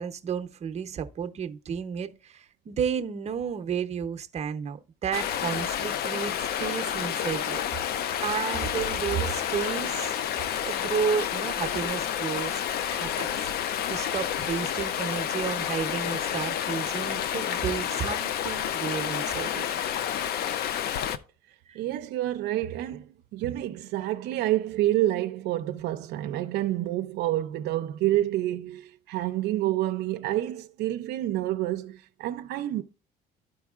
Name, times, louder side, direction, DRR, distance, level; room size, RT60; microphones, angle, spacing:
voice 1, 0.0-6.3 6.6-10.1 10.6-12.6 12.9-19.7 21.7-21.8, right 7 dB, 40° right, 0.7 m, -32 dB
Stream, 5.1-21.2, left 10 dB, 65° left, 0.5 m, -30 dB
voice 2, 21.7-32.8, right 14 dB, 80° right, 0.5 m, -28 dB
13.0 x 4.7 x 2.4 m
cardioid pair, 110°, 17 cm